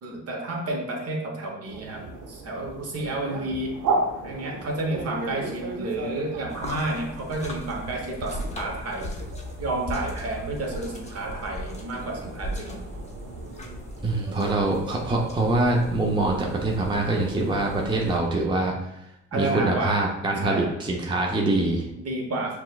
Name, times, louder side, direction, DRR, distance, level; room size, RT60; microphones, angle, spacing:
voice 1, 0.0-3.8 4.2-9.1 9.6-12.8 19.3-20.0 20.4-20.7 22.0-22.6, right 2 dB, 55° right, 0 dB, 1.0 m, -30 dB
sound 1, 1.6-18.5, right 3 dB, 75° right, 0.7 m, -36 dB
sound 2, 6.5-18.2, left 1 dB, 20° left, 0.7 m, -39 dB
voice 2, 14.0-19.0 19.3-21.9, right 2 dB, 15° right, -1 dB, 0.6 m, -24 dB
5.9 x 2.3 x 2.3 m, 0.81 s
cardioid pair, 90°, 30 cm